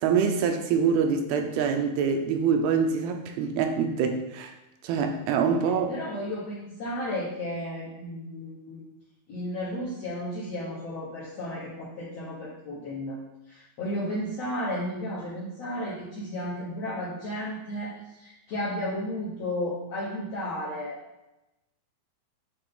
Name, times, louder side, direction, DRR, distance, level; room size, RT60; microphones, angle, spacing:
voice 1, 0.0-4.5 4.8-5.9, right 6 dB, 80° right, 5 dB, 2.5 m, -25 dB
voice 2, 5.9-8.8 9.3-13.2 13.5-21.0, left 1 dB, 70° left, -7 dB, 1.5 m, -33 dB
9.6 x 3.3 x 3.8 m, 0.95 s
omnidirectional pair, 4.4 m